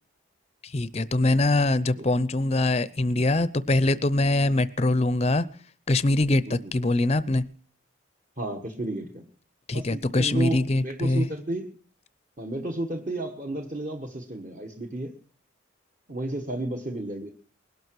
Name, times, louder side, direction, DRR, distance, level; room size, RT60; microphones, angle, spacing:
voice 1, 0.6-5.4 5.9-7.4 9.7-11.3, left 2 dB, 30° left, 0.6 m, -23 dB
voice 2, 8.4-9.3 9.7-11.7 12.4-15.1 16.1-17.3, right 2 dB, 40° right, 1.4 m, -32 dB
20.5 x 12.0 x 4.7 m
head